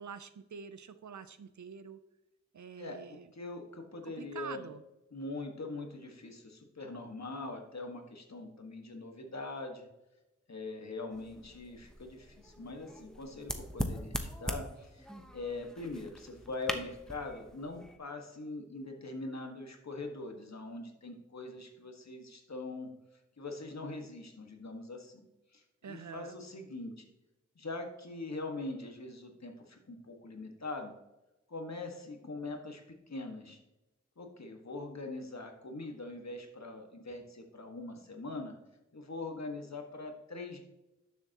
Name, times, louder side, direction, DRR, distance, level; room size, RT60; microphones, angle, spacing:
voice 1, 0.0-2.0 2.5-3.3 4.0-4.8 25.8-26.4, right 6 dB, 75° right, 13 dB, 0.6 m, -46 dB
voice 2, 2.8-4.7 5.1-9.9 10.5-15.1 15.3-22.9 23.4-25.2 25.5-27.1 27.5-30.9 31.5-32.8 33.1-33.6 34.2-38.5 38.9-40.6, left 2 dB, 65° left, 3 dB, 1.7 m, -42 dB
sound 1, 11.1-18.0, equal, ahead, 1.0 m, -41 dB
12.0 x 7.1 x 3.0 m, 0.97 s
wide cardioid pair, 60°, 29 cm